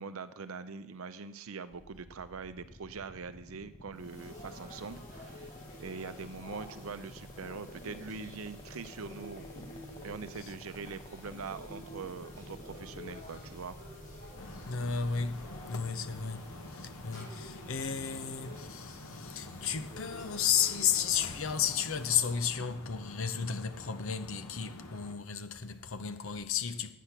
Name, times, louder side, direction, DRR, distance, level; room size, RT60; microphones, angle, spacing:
voice 1, 0.0-9.5 10.0-13.8, right 5 dB, 70° right, 0.6 m, -43 dB
sound 1, 1.7-15.7, left 1 dB, 25° left, 0.7 m, -52 dB
sound 2, 3.9-22.5, left 1 dB, 40° left, 4.6 m, -49 dB
sound 3, 14.4-25.1, left 2 dB, 80° left, 1.2 m, -48 dB
voice 2, 14.7-26.9, left 7 dB, 65° left, 0.7 m, -33 dB
9.3 x 8.4 x 5.8 m
head